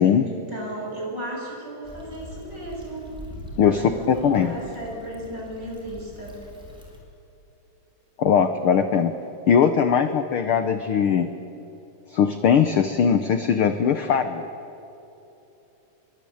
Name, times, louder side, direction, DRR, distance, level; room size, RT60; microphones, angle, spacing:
voice 1, 0.2-3.1 3.6-6.4, right 1 dB, 30° right, -2 dB, 8.0 m, -35 dB
Stream / Traffic noise roadway noise / Trickle dribble, 1.8-7.0, equal, ahead, 4.5 m, -43 dB
voice 2, 3.6-4.5 8.2-9.1 9.5-11.3 12.1-14.4, left 7 dB, 65° left, 9 dB, 1.4 m, -20 dB
25.5 x 23.0 x 8.6 m, 2.9 s
omnidirectional pair, 3.6 m